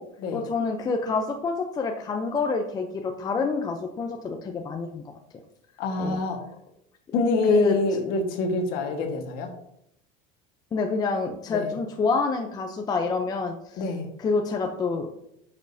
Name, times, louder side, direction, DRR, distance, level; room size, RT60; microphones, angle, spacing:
voice 1, 0.3-5.0 6.0-6.2 7.5-7.8 10.7-13.9 14.2-15.1, left 4 dB, 20° left, 3 dB, 0.6 m, -27 dB
voice 2, 5.8-6.4 7.1-9.5 11.5-11.7 13.8-14.1, left 2 dB, 55° left, 3 dB, 1.5 m, -26 dB
10.5 x 6.3 x 2.7 m, 0.76 s
cardioid pair, 155°, 19 cm